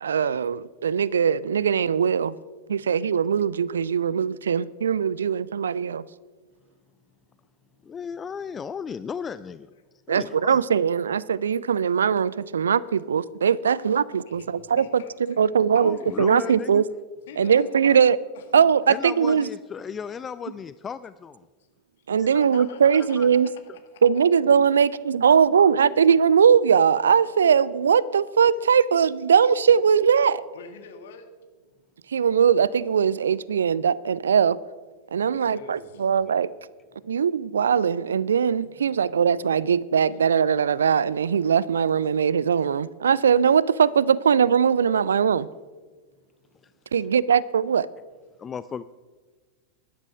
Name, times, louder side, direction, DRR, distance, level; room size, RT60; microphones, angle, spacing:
voice 1, 0.0-2.3 2.7-6.1 10.1-15.0 15.4-16.8 17.4-18.2 18.5-19.5 22.1-23.5 24.0-30.4 32.1-34.6 35.1-36.5 37.0-45.5 46.9-47.9, right 7 dB, 70° right, 0.4 m, -20 dB
voice 2, 7.8-9.7 10.1-10.6 15.8-16.8 18.9-21.5 22.2-22.3 23.2-23.3 46.6-46.7 48.4-48.8, left 6 dB, 20° left, 0.3 m, -35 dB
voice 3, 14.8-15.5 15.7-16.7 17.3-18.4 22.3-23.5 23.9-24.0 30.5-31.3 35.2-36.1 38.6-38.9, left 6 dB, 60° left, 1.7 m, -45 dB
13.0 x 11.5 x 5.1 m
figure-of-eight pair, 90°, 0 cm